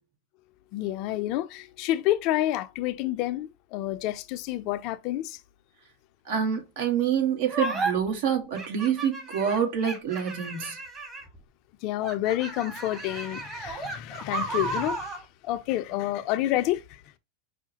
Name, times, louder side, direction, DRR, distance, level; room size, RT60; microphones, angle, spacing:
voice 1, 0.7-5.4 11.8-17.0, left 14 dB, 50° left, 0.5 m, -29 dB
voice 2, 6.3-10.8, right 8 dB, 65° right, 1.3 m, -27 dB
sound 1, 7.5-7.9 8.6-11.4 12.0-15.2, right 3 dB, 25° right, 1.4 m, -33 dB
5.6 x 2.1 x 2.8 m
hypercardioid pair, 115°, 0 cm